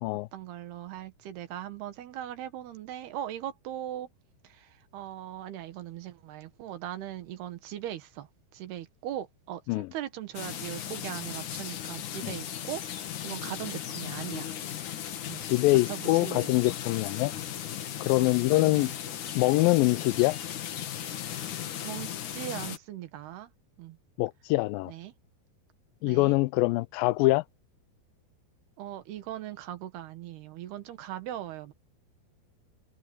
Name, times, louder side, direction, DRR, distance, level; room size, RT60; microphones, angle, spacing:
voice 1, 0.3-4.1 4.5-8.3 8.5-14.5 15.3-15.4 15.9-16.6 18.2-18.9 21.8-23.5 23.8-24.0 24.9-25.1 26.0-26.4 28.8-31.7, right 12 dB, 85° right, 3.5 m, -39 dB
sound 1, 10.3-22.8, left 10 dB, 60° left, 2.8 m, -37 dB
voice 2, 15.4-17.3 18.0-18.9 19.4-20.4 24.2-24.9 26.0-27.4, left 21 dB, 85° left, 2.1 m, -24 dB
omnidirectional pair, 4.5 m